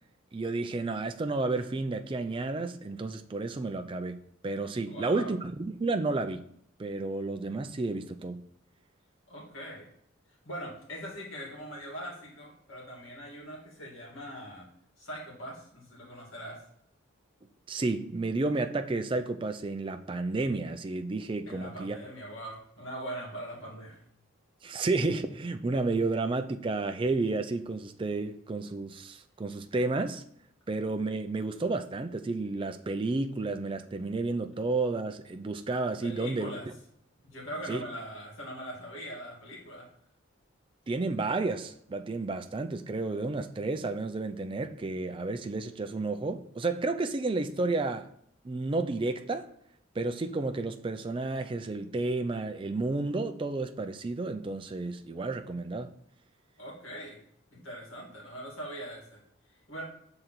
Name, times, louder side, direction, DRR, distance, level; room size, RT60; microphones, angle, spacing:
voice 1, 0.3-6.4 6.8-8.4 17.7-22.0 24.6-30.2 30.7-36.5 37.7-37.8 40.9-48.1 48.4-49.5 50.0-55.9, right 3 dB, 25° right, 0.3 m, -31 dB
voice 2, 4.9-5.3 9.3-9.9 10.4-14.7 15.0-16.6 21.5-24.0 36.0-36.7 37.2-39.9 56.6-57.2 57.5-59.2 59.7-59.8, equal, 80° left, 2.3 m, -41 dB
6.1 x 3.9 x 4.0 m
head